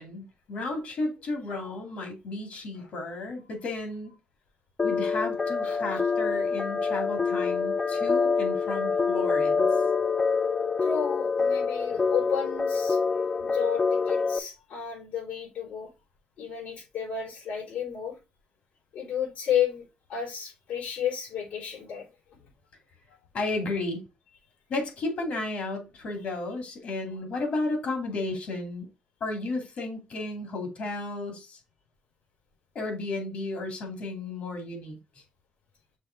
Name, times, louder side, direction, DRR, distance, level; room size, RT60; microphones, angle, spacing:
voice 1, 0.0-4.1 4.8-9.7 23.3-24.0 24.7-28.9 29.2-31.6 32.7-35.0, left 2 dB, 55° left, 2.5 m, -33 dB
sound 1, 4.8-14.4, left 4 dB, 25° left, 0.5 m, -26 dB
voice 2, 10.8-13.0 13.4-15.9 16.4-18.2 18.9-22.1, left 8 dB, 80° left, 4.1 m, -32 dB
6.3 x 3.5 x 4.5 m
cardioid pair, 135°, 3 cm